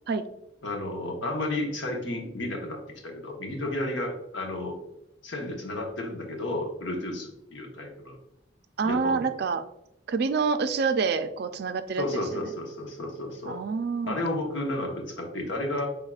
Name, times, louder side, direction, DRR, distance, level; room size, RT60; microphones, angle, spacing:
voice 1, 0.6-4.8 5.2-8.2 8.8-9.2 12.0-13.6 14.1-15.9, left 1 dB, 75° left, 1 dB, 1.1 m, -32 dB
voice 2, 8.8-9.6 10.1-12.5 13.4-14.2, right 5 dB, 55° right, 10 dB, 0.4 m, -27 dB
5.8 x 3.6 x 2.3 m, 0.84 s
head